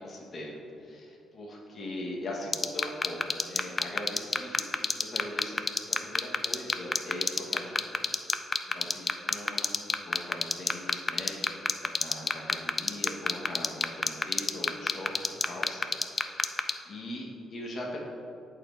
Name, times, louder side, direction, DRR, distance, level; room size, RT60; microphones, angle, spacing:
voice 1, 0.0-7.9 8.3-15.9 16.3-18.0, left 1 dB, 45° left, -3 dB, 1.2 m, -41 dB
sound 1, 2.5-16.7, left 4 dB, 30° left, 0.3 m, -25 dB
11.0 x 4.4 x 2.6 m, 2.6 s
cardioid pair, 90°, 0 cm